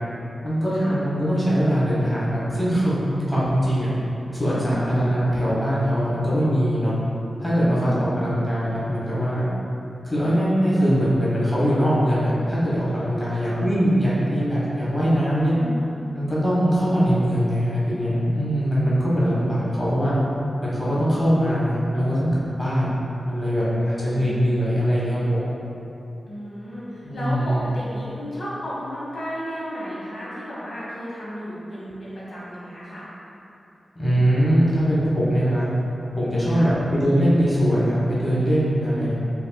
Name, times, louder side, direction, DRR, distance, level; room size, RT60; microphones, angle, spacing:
voice 1, 0.4-3.9 4.3-7.0 7.4-9.5 10.0-15.5 16.1-20.1 20.6-23.0 23.3-25.4 27.0-27.6 33.9-35.7 36.2-39.1, equal, 5° left, -9 dB, 1.1 m, -22 dB
voice 2, 4.7-5.1 7.6-8.4 13.3-13.6 15.5-15.9 18.8-19.6 23.8-24.3 26.3-33.1 36.4-36.7 38.8-39.1, equal, 70° left, -9 dB, 1.0 m, -34 dB
5.2 x 2.4 x 2.2 m, 2.9 s
wide cardioid pair, 75°, 0 cm